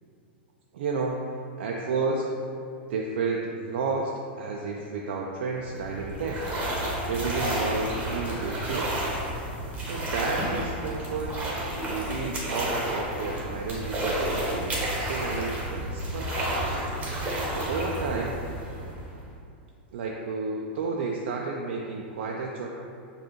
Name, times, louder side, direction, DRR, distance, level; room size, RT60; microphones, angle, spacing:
voice 1, 0.7-1.2 1.6-2.3 2.9-4.1 4.4-6.4 7.1-9.0 9.8-11.4 11.8-16.5 17.5-18.4 19.9-22.7, right 4 dB, 75° right, -1 dB, 0.4 m, -31 dB
sound 1, 5.6-19.3, right 1 dB, 25° right, 0.9 m, -31 dB
5.0 x 2.4 x 3.0 m, 2.5 s
hypercardioid pair, 120°, 6 cm